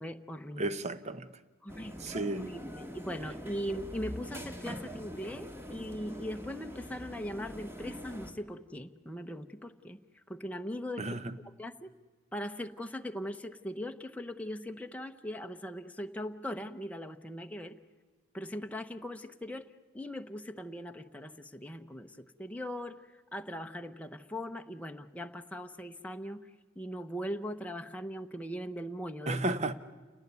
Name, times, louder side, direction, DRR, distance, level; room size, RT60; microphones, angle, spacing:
voice 1, 0.0-0.6 1.6-10.0 10.3-11.9 12.3-17.8 18.3-19.7 19.9-26.4 26.8-29.4, equal, 5° left, 0.8 m, -40 dB
voice 2, 0.6-1.3 2.0-2.5 11.0-11.2 29.3-29.7, right 2 dB, 35° right, 1.0 m, -32 dB
sound 1, 1.7-8.3, equal, 10° right, 1.8 m, -44 dB
28.5 x 18.5 x 9.6 m
head